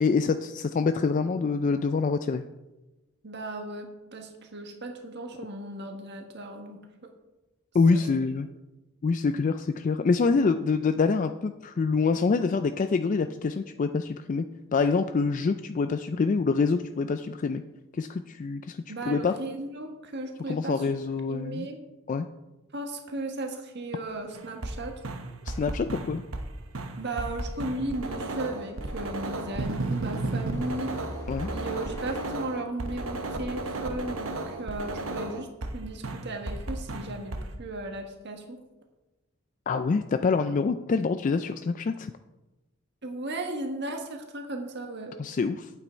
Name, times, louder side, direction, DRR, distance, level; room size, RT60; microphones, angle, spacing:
voice 1, 0.0-2.4 7.7-8.5 9.0-14.5 14.7-17.6 17.9-19.3 20.5-21.7 22.1-22.3 25.5-26.2 31.3-31.5 39.7-42.1 45.2-45.7, left 4 dB, 35° left, 9 dB, 0.3 m, -26 dB
voice 2, 3.2-6.8 7.9-8.0 18.9-20.9 21.3-21.8 22.7-25.0 27.0-30.9 31.5-38.6 43.0-45.2, right 2 dB, 55° right, 3 dB, 1.5 m, -36 dB
sound 1, 24.1-24.2 26.8-32.3, equal, 15° left, 0.8 m, -45 dB
sound 2, 24.3-24.8 25.0-26.5 26.7-35.8 36.0-37.5, right 2 dB, 70° right, 1.0 m, -33 dB
8.7 x 8.5 x 4.4 m, 1.1 s
head